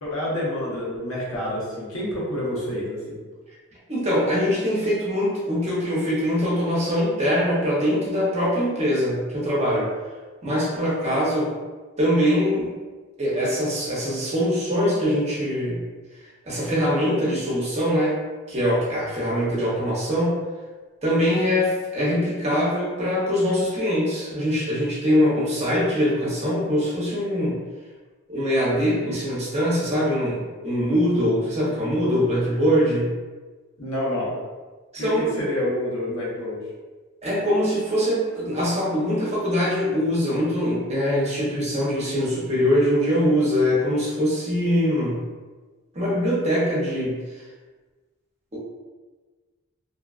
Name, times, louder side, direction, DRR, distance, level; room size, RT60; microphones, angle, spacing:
voice 1, 0.0-3.2 33.8-34.3 35.0-36.6, left 1 dB, 75° left, -6 dB, 0.9 m, -28 dB
voice 2, 3.9-9.9 10.4-11.5 12.0-12.7 13.2-15.8 16.4-18.2 18.5-20.4 21.0-27.6 28.3-33.1 34.9-35.3 37.2-45.2 45.9-47.2 48.5-48.6, equal, 30° right, -6 dB, 0.7 m, -23 dB
2.6 x 2.3 x 2.3 m, 1.3 s
head